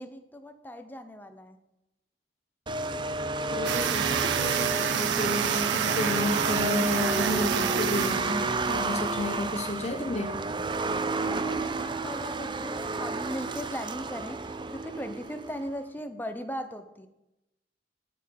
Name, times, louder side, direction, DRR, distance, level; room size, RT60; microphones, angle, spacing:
voice 1, 0.0-1.6 11.0-17.1, equal, 10° left, 8 dB, 0.8 m, -38 dB
sound 1, 2.7-15.7, right 3 dB, 25° right, 0.5 m, -30 dB
voice 2, 3.5-10.4, left 2 dB, 40° left, 5 dB, 1.0 m, -32 dB
sound 2, 3.6-8.8, right 10 dB, 90° right, 0.4 m, -30 dB
8.9 x 8.9 x 5.9 m, 0.93 s
head